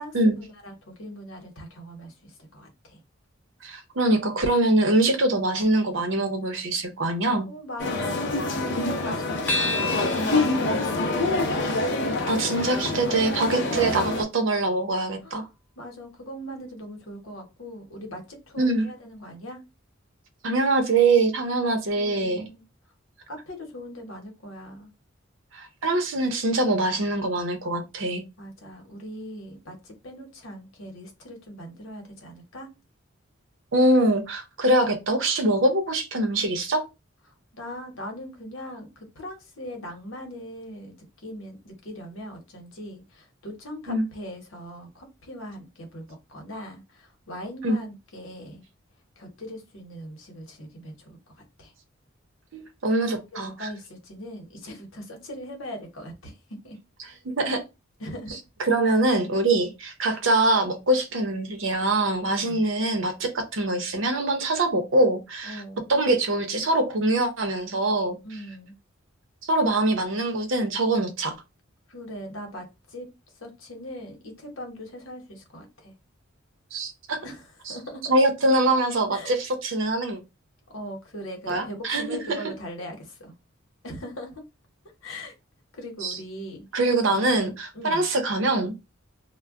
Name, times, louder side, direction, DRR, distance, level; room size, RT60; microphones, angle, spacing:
voice 1, 0.0-3.0 7.4-11.6 15.2-15.5 15.8-19.6 21.9-22.6 23.3-24.9 28.4-32.7 37.5-48.6 49.2-51.7 53.1-56.8 58.0-58.4 58.8-59.0 59.5-59.6 62.3-62.7 65.4-65.9 68.2-68.8 71.9-73.1 73.3-75.9 77.2-78.2 79.1-79.3 80.7-83.3 83.8-84.4 85.0-85.3 85.7-86.8 87.1-87.4 87.7-88.0, equal, 85° left, 0.9 m, -40 dB
voice 2, 3.6-7.5 12.3-15.4 18.6-18.9 20.4-22.4 25.5-28.2 33.7-36.8 43.9-44.0 47.6-47.8 52.5-53.7 57.2-57.6 58.6-65.6 65.9-68.2 69.4-71.3 76.7-77.2 78.1-80.2 81.5-82.4 86.0-86.2 86.7-88.7, right 2 dB, 70° right, 0.7 m, -23 dB
sound 1, 7.8-14.2, left 2 dB, 60° left, 0.6 m, -26 dB
sound 2, 9.5-14.2, left 2 dB, 10° left, 0.4 m, -34 dB
2.2 x 2.1 x 3.5 m
head